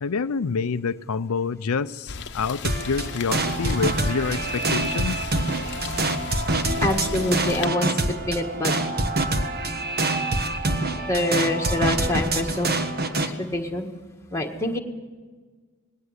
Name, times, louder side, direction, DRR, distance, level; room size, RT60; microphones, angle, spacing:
voice 1, 0.0-5.3, left 5 dB, 75° left, 11 dB, 0.5 m, -27 dB
Rain, 2.1-7.7, left 5 dB, 55° left, 0.9 m, -36 dB
sound 1, 2.6-13.3, right 2 dB, 45° right, 1.5 m, -25 dB
voice 2, 6.8-8.0 8.3-8.7 11.1-12.7 13.2-13.9 14.3-14.8, left 1 dB, 15° left, 2 dB, 1.7 m, -25 dB
19.5 x 18.0 x 8.0 m, 1.4 s
head